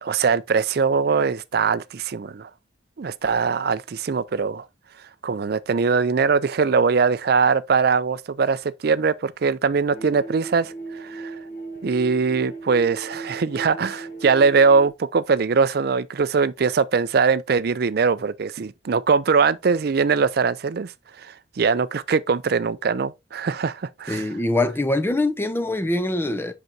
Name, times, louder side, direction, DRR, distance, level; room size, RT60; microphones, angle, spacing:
voice 1, 0.0-2.5 3.0-4.7 5.2-11.4 11.8-20.9 21.2-24.3, right 5 dB, 55° right, 0.4 m, -21 dB
sound 1, 9.9-14.9, right 3 dB, 45° left, 1.5 m, -37 dB
voice 2, 24.1-26.5, left 2 dB, 10° left, 0.7 m, -23 dB
7.9 x 5.8 x 2.7 m
head